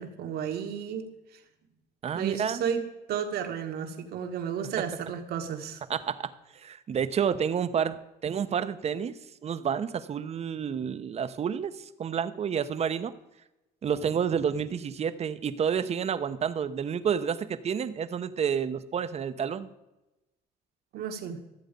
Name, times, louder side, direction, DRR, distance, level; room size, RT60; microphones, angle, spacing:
voice 1, 0.0-1.4 2.1-2.8 3.1-5.8 20.9-21.4, right 7 dB, 70° right, 5 dB, 1.5 m, -33 dB
voice 2, 2.0-2.6 5.9-9.2 9.4-13.1 13.8-19.7, right 7 dB, 40° right, 13 dB, 0.7 m, -30 dB
13.5 x 7.9 x 5.2 m, 0.99 s
cardioid pair, 110°, 17 cm